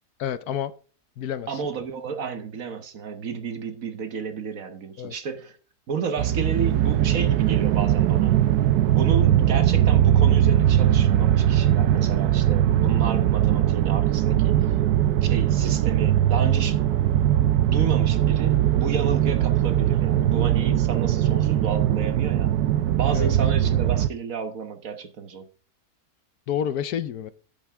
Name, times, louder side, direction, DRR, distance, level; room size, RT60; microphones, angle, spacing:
voice 1, 0.2-0.7 1.2-1.5 5.0-5.1 23.1-23.3 26.5-27.3, left 9 dB, 75° left, 1.3 m, -29 dB
voice 2, 1.5-5.6 5.9-8.4 8.8-14.7 15.2-16.8 17.7-22.5 22.9-25.5, right 6 dB, 60° right, 1.5 m, -31 dB
sound 1, 6.2-24.1, right 11 dB, 80° right, 1.1 m, -20 dB
10.5 x 7.9 x 3.6 m
omnidirectional pair, 1.7 m